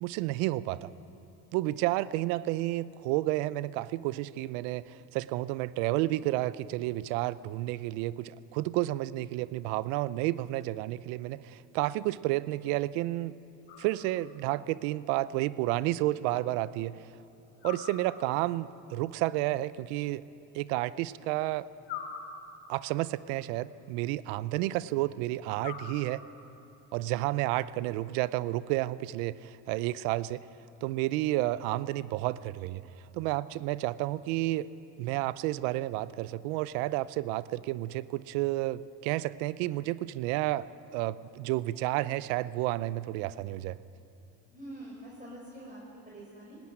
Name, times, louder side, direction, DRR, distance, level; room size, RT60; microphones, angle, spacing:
voice 1, 0.0-0.9 1.5-13.3 13.8-16.9 17.6-20.2 20.5-21.7 22.7-26.2 26.9-30.4 30.8-32.8 33.1-34.7 35.0-40.7 40.9-43.8, right 17 dB, 90° right, 17 dB, 0.7 m, -31 dB
sound 1, 13.7-14.5 17.6-18.6 21.8-22.9 25.6-26.6, left 7 dB, 75° left, 3.3 m, -44 dB
voice 2, 44.5-46.6, right 1 dB, 20° right, -4 dB, 5.7 m, -46 dB
18.5 x 18.0 x 10.0 m, 2.7 s
supercardioid pair, 80°, 42 cm